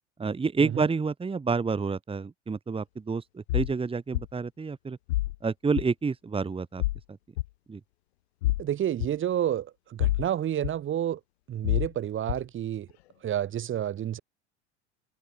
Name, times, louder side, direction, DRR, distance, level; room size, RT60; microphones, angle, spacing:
voice 1, 0.2-5.0 5.4-6.8 7.1-7.2 7.7-7.8, right 4 dB, 15° right, 1.9 m, -29 dB
sound 1, 3.5-3.7 4.1-4.3 5.1-5.4 5.8-5.9 6.8-7.0 7.4-7.5 8.4-8.6 9.0-9.1 10.0-10.3 10.6-10.7 11.6-11.9 12.3-12.4, left 17 dB, 65° left, 1.3 m, -26 dB
voice 2, 8.6-11.2 11.5-12.9 13.2-14.2, right 10 dB, 35° right, 2.3 m, -30 dB
figure-of-eight pair, 75°, 34 cm